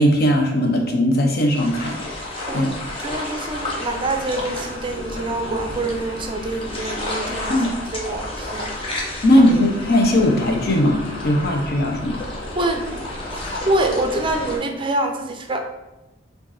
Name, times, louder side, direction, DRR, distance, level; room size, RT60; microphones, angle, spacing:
voice 1, 0.0-2.0 2.5-2.7 7.5-7.7 9.2-12.2, left 1 dB, 55° left, 2 dB, 0.8 m, -18 dB
sound 1, 1.5-14.6, left 1 dB, 30° left, 0.9 m, -31 dB
voice 2, 3.0-7.6 7.9-8.7 12.5-12.9 13.7-15.7, right 2 dB, 25° right, 4 dB, 0.5 m, -25 dB
5.0 x 2.6 x 4.1 m, 1.0 s
head